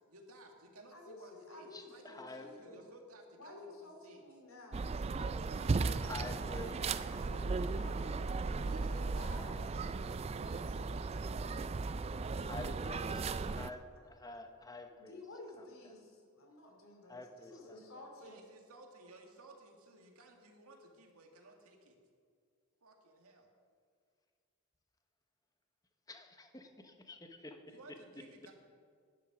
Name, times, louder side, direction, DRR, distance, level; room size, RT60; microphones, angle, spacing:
voice 1, 0.0-4.2 5.2-7.0 8.7-13.7 18.2-22.0 22.8-23.5 27.7-28.5, right 1 dB, 85° right, 2 dB, 2.0 m, -57 dB
voice 2, 0.9-2.9 3.3-5.0 7.1-9.7 14.9-18.4, left 2 dB, 70° left, 2 dB, 2.8 m, -52 dB
voice 3, 1.7-2.5 6.0-6.8 12.4-13.2 13.6-15.2 17.1-17.8 26.1-27.8, left 2 dB, 15° left, 6 dB, 0.9 m, -48 dB
sound 1, 4.7-13.7, right 4 dB, 30° right, 0.3 m, -36 dB
11.5 x 10.5 x 6.0 m, 2.2 s
head